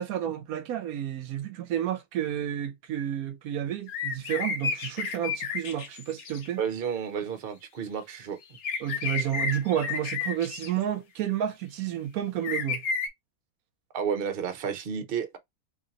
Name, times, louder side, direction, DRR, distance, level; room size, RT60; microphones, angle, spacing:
voice 1, 0.0-6.6 8.8-12.8, right 10 dB, 80° right, 1.1 m, -31 dB
sound 1, 3.9-6.5 8.4-10.7 12.4-13.1, left 5 dB, 65° left, 1.2 m, -31 dB
voice 2, 6.6-8.4 13.9-15.4, right 7 dB, 45° right, 0.9 m, -31 dB
3.2 x 2.8 x 3.8 m
omnidirectional pair, 1.5 m